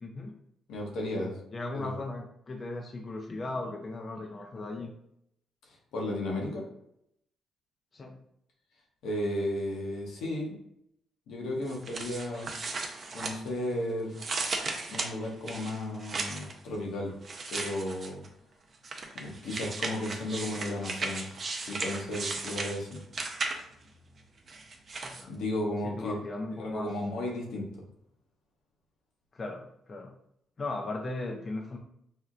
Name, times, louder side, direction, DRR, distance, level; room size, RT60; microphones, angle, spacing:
voice 1, 0.0-0.3 1.5-4.9 7.9-8.2 25.1-25.4 25.8-26.9 29.3-30.1 30.6-31.8, left 2 dB, 35° left, 1 dB, 0.4 m, -37 dB
voice 2, 0.7-1.4 1.7-2.0 5.9-6.6 9.0-10.5 11.3-12.5 13.1-14.1 14.9-17.1 17.5-18.2 19.1-21.4 21.7-23.0 25.3-26.2 26.6-27.6, left 1 dB, 80° left, -1 dB, 0.9 m, -34 dB
sound 1, 11.7-13.8 14.1-16.5 17.2-18.3 18.8-23.8 24.5-25.2, right 3 dB, 40° right, 0.5 m, -36 dB
4.3 x 2.1 x 2.5 m, 0.74 s
cardioid pair, 90°, 0 cm